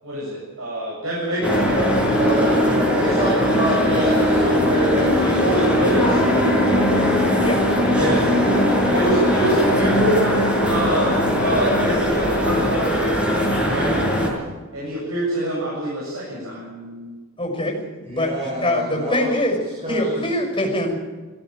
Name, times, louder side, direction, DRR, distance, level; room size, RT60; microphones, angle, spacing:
voice 1, 0.0-2.1 3.0-6.2 7.9-8.3 8.9-13.2 13.7-13.9 14.7-16.6, right 1 dB, 80° right, -6 dB, 8.0 m, -25 dB
sound 1, 1.4-14.3, equal, 5° right, 5.8 m, -19 dB
voice 2, 2.1-5.4 16.3-17.1 18.1-19.3 19.8-20.2, right 1 dB, 30° right, -3 dB, 5.8 m, -27 dB
voice 3, 17.4-17.8 18.1-19.6 19.9-20.9, left 1 dB, 20° left, 1 dB, 5.8 m, -23 dB
20.0 x 16.5 x 9.0 m, 1.3 s
head